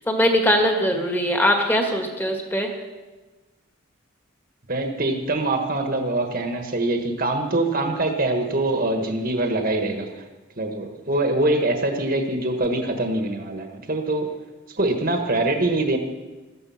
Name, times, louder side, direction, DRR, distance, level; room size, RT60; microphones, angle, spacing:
voice 1, 0.1-2.7, equal, 10° left, 3 dB, 1.8 m, -21 dB
voice 2, 4.7-10.2 10.6-14.3 14.8-16.0, right 2 dB, 45° right, 4 dB, 1.4 m, -24 dB
15.5 x 13.0 x 5.8 m, 1.2 s
head